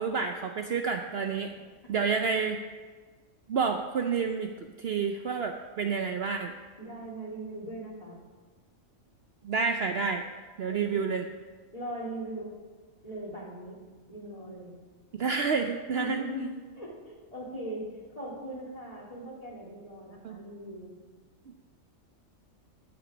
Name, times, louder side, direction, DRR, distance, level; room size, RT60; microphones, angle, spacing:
voice 1, 0.0-1.5 1.9-2.6 3.5-6.5 9.4-10.2 10.6-11.2 15.1-16.2 20.2-20.4, right 5 dB, 60° right, 5 dB, 0.8 m, -29 dB
voice 2, 6.8-8.2 10.6-11.2 11.7-12.5 13.0-13.8 14.1-14.8 16.0-20.9, right 1 dB, 25° left, -3 dB, 2.9 m, -39 dB
15.0 x 6.1 x 6.2 m, 1.4 s
omnidirectional pair, 1.4 m